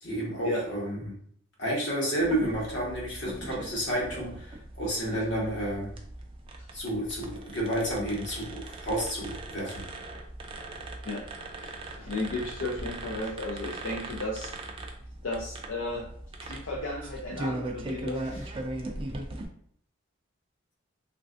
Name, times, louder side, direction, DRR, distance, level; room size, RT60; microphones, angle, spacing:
voice 1, 0.0-1.1 1.6-5.9 6.7-9.8, right 1 dB, 60° left, -3 dB, 1.1 m, -31 dB
sound 1, 2.2-19.4, right 2 dB, 25° right, 0.3 m, -39 dB
voice 2, 11.6-14.5 15.2-16.1 16.4-18.5, left 2 dB, 80° left, -3 dB, 0.5 m, -34 dB
3.2 x 2.5 x 2.4 m, 0.65 s
head